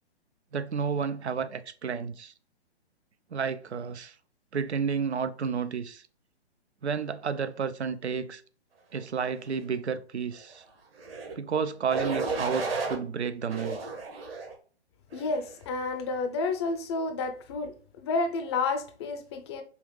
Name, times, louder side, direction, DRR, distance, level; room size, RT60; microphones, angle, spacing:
voice 1, 0.5-2.3 3.3-4.1 4.5-6.0 6.8-8.4 8.9-10.6 11.4-13.8, right 6 dB, 80° right, 0.6 m, -31 dB
sound 1, 11.0-11.3 11.9-13.0 13.5-14.5 15.1-15.5, right 3 dB, 60° right, 1.6 m, -33 dB
voice 2, 15.1-19.6, left 3 dB, 25° left, 0.6 m, -30 dB
5.6 x 2.5 x 3.1 m
figure-of-eight pair, 130°, 33 cm